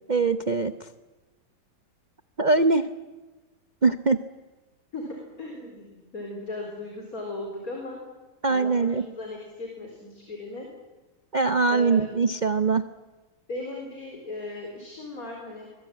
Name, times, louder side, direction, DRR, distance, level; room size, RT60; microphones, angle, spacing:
voice 1, 0.1-0.9 2.4-2.9 3.8-4.2 8.4-9.0 11.3-12.8, right 4 dB, 90° right, 11 dB, 0.4 m, -22 dB
voice 2, 4.9-8.0 8.5-10.7 11.7-12.1 13.5-15.7, left 2 dB, 45° left, 1 dB, 4.8 m, -37 dB
24.5 x 22.0 x 8.9 m, 1.2 s
omnidirectional pair, 2.1 m